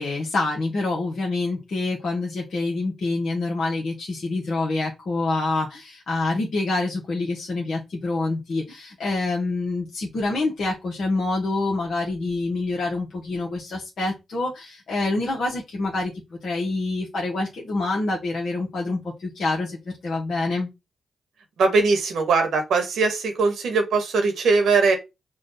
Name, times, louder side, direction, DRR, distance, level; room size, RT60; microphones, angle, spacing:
voice 1, 0.0-20.7, left 2 dB, 65° left, 0.9 m, -26 dB
voice 2, 21.6-25.0, right 4 dB, 80° right, 1.1 m, -20 dB
4.9 x 2.3 x 3.9 m
supercardioid pair, 40°, 0 cm